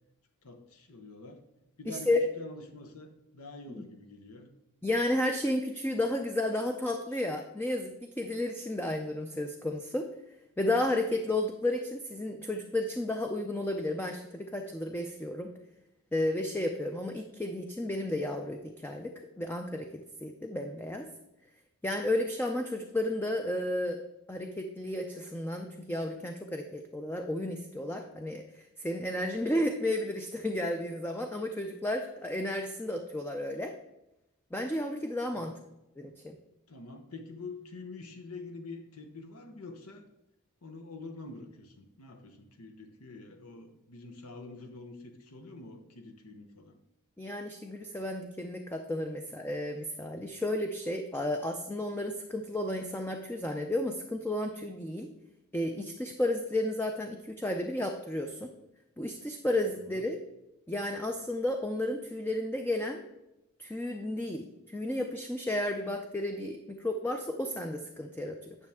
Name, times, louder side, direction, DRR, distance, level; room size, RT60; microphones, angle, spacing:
voice 1, 0.4-1.4 1.8-2.1 2.4-4.5 35.3-35.6 36.7-40.0 40.6-46.8 59.8-60.1, left 3 dB, 75° left, 5 dB, 1.1 m, -46 dB
voice 2, 1.9-2.2 3.7-3.9 4.8-10.1 10.6-15.5 16.1-21.1 21.8-24.0 24.3-33.7 34.5-35.6 36.0-36.4 47.2-55.1 55.5-58.5 59.0-60.2 60.7-63.0 63.6-68.6, left 1 dB, 10° left, 4 dB, 0.5 m, -32 dB
9.9 x 6.4 x 3.6 m, 0.91 s
head